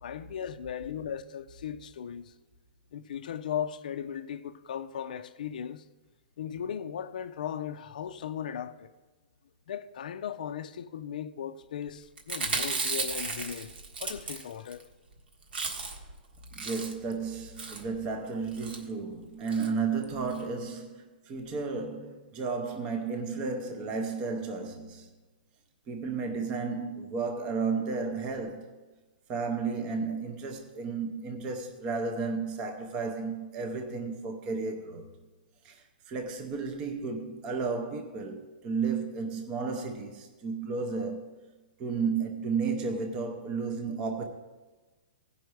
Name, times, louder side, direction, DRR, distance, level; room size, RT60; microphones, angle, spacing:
voice 1, 0.0-2.3 2.9-5.8 6.4-8.9 9.7-13.7 14.0-14.8, left 8 dB, 50° left, 0.4 m, -37 dB
Chewing mastication, 12.2-14.8 15.1-15.2 15.4-16.1 16.4-17.1 17.6-17.9 18.5-18.8 19.5-19.7 20.0-20.1 20.3-20.4, right 4 dB, 80° right, 1.5 m, -34 dB
voice 2, 16.5-25.1 25.9-28.7 29.3-35.1 35.6-41.2 41.8-44.3, right 4 dB, 15° right, 0.6 m, -33 dB
16.0 x 5.5 x 4.6 m
hypercardioid pair, 175°, 5 cm